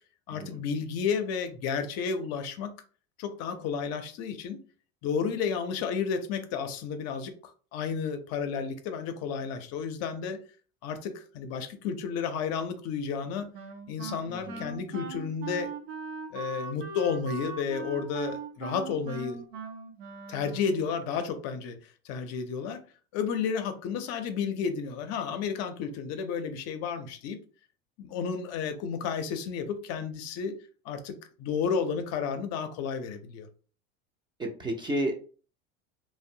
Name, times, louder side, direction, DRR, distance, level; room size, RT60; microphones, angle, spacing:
voice 1, 0.3-2.7 3.2-4.6 5.0-7.3 7.7-10.4 10.8-13.5 13.9-15.7 16.3-19.4 20.3-21.8 22.0-22.9 23.1-27.4 28.0-30.6 30.8-33.5, left 6 dB, 55° left, 0.5 m, -32 dB
Wind instrument woodwind instrument, 13.5-21.0, right 4 dB, 85° right, 0.7 m, -40 dB
voice 2, 14.3-14.6 34.4-35.1, right 1 dB, 15° right, 0.4 m, -31 dB
2.5 x 2.0 x 2.6 m
supercardioid pair, 105°, 31 cm